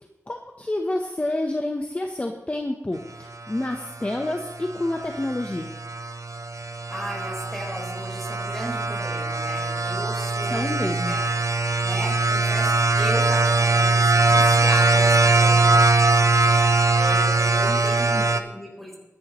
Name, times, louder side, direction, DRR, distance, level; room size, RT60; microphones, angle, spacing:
voice 1, 0.3-5.7 10.5-11.2 17.7-17.8 18.1-18.2, left 1 dB, 25° left, 4 dB, 0.9 m, -28 dB
sound 1, 3.7-18.4, right 3 dB, 80° right, 0.8 m, -21 dB
voice 2, 6.9-11.2 11.8-15.8 16.9-19.0, equal, 5° left, -1 dB, 4.2 m, -35 dB
22.0 x 11.0 x 3.1 m, 1.0 s
wide cardioid pair, 90°, 5 cm